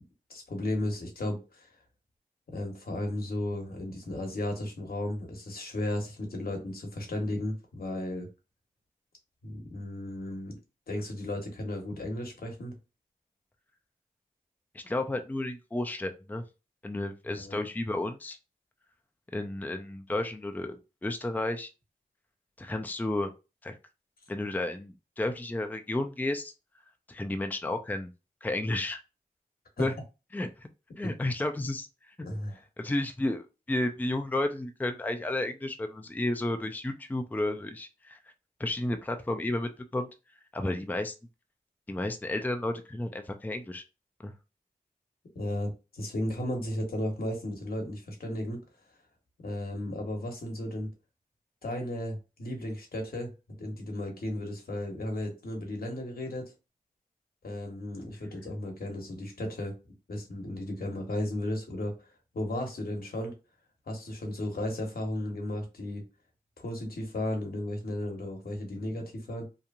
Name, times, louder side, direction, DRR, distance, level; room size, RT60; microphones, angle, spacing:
voice 1, 0.3-1.7 2.5-8.3 9.4-10.6 10.9-12.7 17.3-17.6 29.8-29.9 31.0-31.1 32.2-32.6 45.3-48.6 49.4-50.9 51.6-56.5 57.4-59.8 60.1-63.3 63.9-66.1 66.6-69.5, left 1 dB, 75° left, 1.0 m, -34 dB
voice 2, 14.7-16.4 16.8-18.4 19.3-21.7 22.6-23.3 23.6-23.8 24.3-26.5 27.1-28.1 28.4-29.0 29.8-29.9 30.3-30.7 31.0-31.9 32.2-32.3 32.8-38.2 38.6-40.1 40.5-41.1 41.9-43.8 44.2-44.3, left 1 dB, 10° left, 0.4 m, -32 dB
2.9 x 2.5 x 2.4 m
cardioid pair, 45°, 15 cm